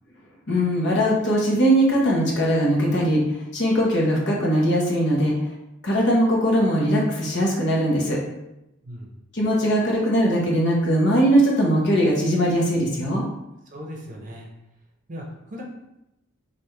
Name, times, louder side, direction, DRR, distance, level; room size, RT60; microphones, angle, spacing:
voice 1, 0.5-3.2 3.5-5.3 5.8-8.2 9.3-13.2, equal, 60° left, -2 dB, 1.0 m, -20 dB
voice 2, 13.7-14.5 15.1-15.6, equal, 40° right, -1 dB, 0.7 m, -37 dB
3.3 x 2.5 x 4.5 m, 0.89 s
head